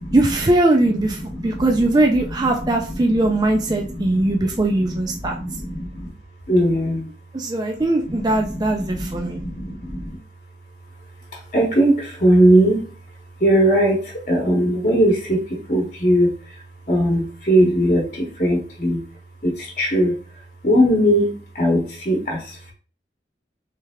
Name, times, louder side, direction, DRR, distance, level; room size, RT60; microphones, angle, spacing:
voice 1, 0.1-1.2 1.4-5.3 7.3-9.4, right 2 dB, 25° right, 1 dB, 0.4 m, -20 dB
voice 2, 1.2-6.1 6.5-7.1 8.0-10.2 11.5-12.8 13.4-16.3 16.9-19.0 19.4-20.2 20.6-22.7, right 1 dB, 45° left, -1 dB, 1.0 m, -20 dB
3.3 x 3.2 x 3.5 m, 0.39 s
head